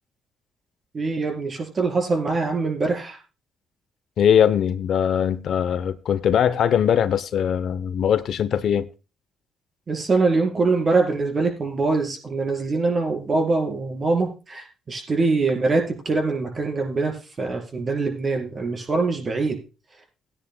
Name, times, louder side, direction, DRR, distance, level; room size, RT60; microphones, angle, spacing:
voice 1, 0.9-3.2 9.9-19.6, right 3 dB, 40° right, 4.1 m, -23 dB
voice 2, 4.2-8.9, left 8 dB, 65° left, 0.7 m, -21 dB
18.5 x 9.8 x 2.2 m
cardioid pair, 90°, 0 cm